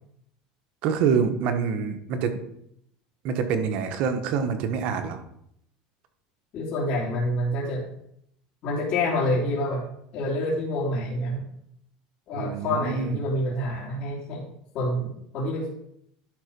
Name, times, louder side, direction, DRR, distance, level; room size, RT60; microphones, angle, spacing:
voice 1, 0.8-2.4 3.2-5.2 12.3-13.2, right 6 dB, 55° right, 7 dB, 1.2 m, -26 dB
voice 2, 6.5-7.8 8.6-9.8 10.1-11.4 12.3-14.5 14.7-15.7, left 1 dB, 50° left, -5 dB, 3.0 m, -27 dB
11.0 x 3.9 x 5.2 m, 0.74 s
supercardioid pair, 130°, 2 cm